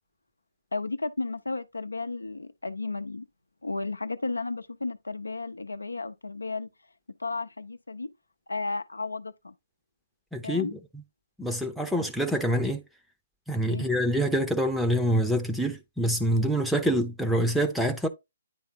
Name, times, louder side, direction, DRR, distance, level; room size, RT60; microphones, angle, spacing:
voice 1, 0.7-3.3 3.6-6.7 7.2-8.1 8.5-9.5 10.4-10.7 13.7-13.9, left 3 dB, 75° left, 0.6 m, -33 dB
voice 2, 10.3-10.8 11.4-12.8 13.5-18.1, equal, ahead, 0.7 m, -26 dB
10.0 x 3.4 x 2.8 m
figure-of-eight pair, 135°, 0 cm